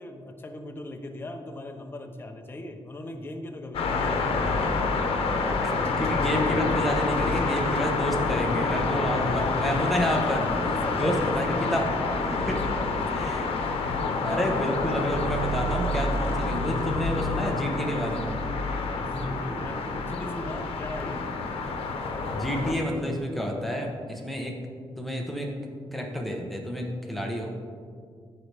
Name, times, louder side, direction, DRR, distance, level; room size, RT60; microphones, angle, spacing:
voice 1, 0.0-4.4 10.6-13.3 19.0-21.3, left 1 dB, 25° left, 4 dB, 0.8 m, -39 dB
sound 1, 3.7-22.7, left 3 dB, 80° left, 0.9 m, -27 dB
voice 2, 5.6-10.5 10.9-11.9 12.3-12.6 13.1-13.5 14.2-18.4 22.3-24.6 25.0-25.5 25.9-27.5, equal, ahead, 0 dB, 1.1 m, -29 dB
14.5 x 4.9 x 3.4 m, 2.1 s
wide cardioid pair, 140°, 10 cm